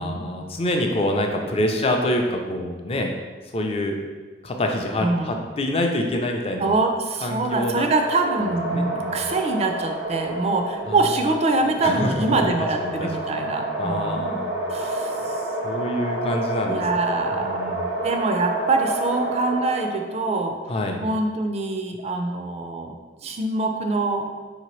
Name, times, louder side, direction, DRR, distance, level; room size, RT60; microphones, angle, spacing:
voice 1, 0.0-3.1 3.5-4.0 4.4-6.7 7.2-7.9 8.4-9.2 10.8-11.0 11.8-12.5 12.8-13.4 13.8-14.9 15.6-16.8 17.3-17.9 20.7-21.0, left 1 dB, 35° left, 3 dB, 0.4 m, -26 dB
voice 2, 5.0-5.4 6.6-14.4 14.7-15.4 16.7-17.7 18.0-20.6 21.0-23.0 23.2-24.3, right 3 dB, 35° right, 4 dB, 0.3 m, -24 dB
sound 1, 7.7-20.2, right 2 dB, 85° right, 0.6 m, -29 dB
4.3 x 2.8 x 3.1 m, 1.4 s
head